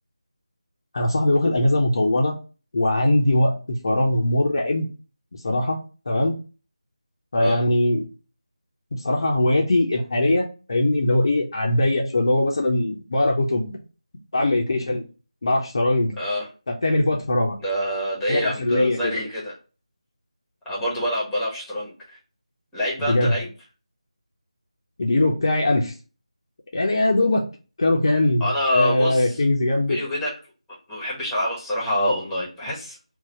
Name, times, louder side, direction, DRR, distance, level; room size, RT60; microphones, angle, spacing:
voice 1, 0.9-2.3 2.7-4.9 5.4-5.8 6.1-6.4 7.3-8.1 8.9-13.8 14.3-15.0 15.4-16.1 16.7-17.6 18.3-19.2 23.0-23.3 25.0-25.9 26.7-27.5 27.8-30.0, left 1 dB, 45° left, 0 dB, 0.7 m, -21 dB
voice 2, 16.2-16.5 17.6-19.5 20.6-22.2 22.7-23.5 28.4-29.4 29.9-30.3 30.9-33.0, equal, ahead, -7 dB, 1.1 m, -26 dB
4.0 x 2.4 x 4.3 m, 0.34 s
figure-of-eight pair, 165°, 4 cm